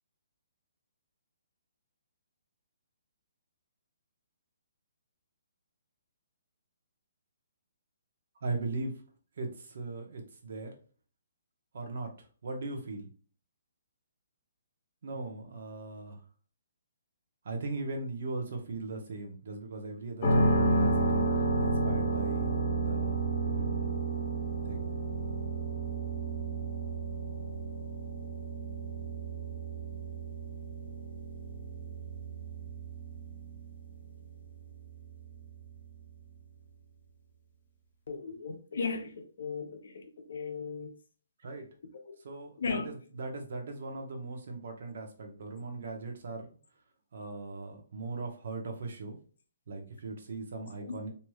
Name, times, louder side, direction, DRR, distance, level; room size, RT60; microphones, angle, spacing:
voice 1, 8.4-8.9 9.4-10.7 11.7-12.1 12.4-13.1 15.0-16.2 17.4-21.2 21.6-23.9 24.7-24.9 41.4-41.7 42.2-46.5 47.1-49.2 49.7-51.1, right 3 dB, 60° right, 0.9 m, -39 dB
sound 1, 20.2-36.1, right 2 dB, 35° left, 1.1 m, -32 dB
voice 2, 38.1-41.0 42.1-42.2 42.6-42.9 50.5-50.9, left 4 dB, 65° left, 0.7 m, -37 dB
3.1 x 2.7 x 2.3 m
hypercardioid pair, 160°, 0 cm